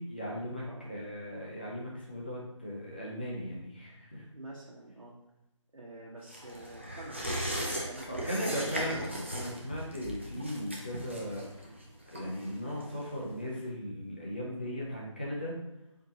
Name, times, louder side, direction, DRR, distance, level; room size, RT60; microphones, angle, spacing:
voice 1, 0.0-4.2 8.1-11.7 12.1-15.6, equal, 20° left, -5 dB, 0.7 m, -37 dB
voice 2, 0.6-1.0 4.3-5.2 5.7-7.5 7.8-9.1, right 2 dB, 80° right, -5 dB, 1.1 m, -47 dB
sound 1, 6.3-13.3 13.6-13.7, equal, 25° right, 0.5 m, -38 dB
4.4 x 3.7 x 2.8 m, 0.91 s
figure-of-eight pair, 175°, 17 cm